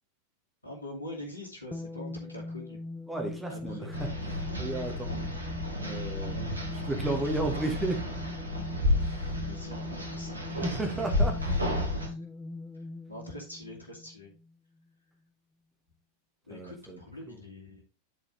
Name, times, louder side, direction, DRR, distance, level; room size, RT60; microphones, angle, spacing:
voice 1, 0.6-2.8 3.5-4.0 9.2-10.5 11.9-12.2 13.1-14.3 16.5-17.8, left 1 dB, 80° left, 0 dB, 2.4 m, -44 dB
sound 1, 1.7-14.5, left 2 dB, 10° left, 0.8 m, -41 dB
voice 2, 3.1-4.1 4.4-5.1 5.8-6.4 6.9-8.0 9.0-9.2 10.6-11.6 16.5-17.0 17.3-17.4, right 2 dB, 10° right, 2 dB, 2.0 m, -33 dB
sound 2, 3.9-12.1, left 1 dB, 80° right, 1.8 m, -32 dB
10.5 x 4.8 x 3.7 m, 0.33 s
figure-of-eight pair, 90°, 0 cm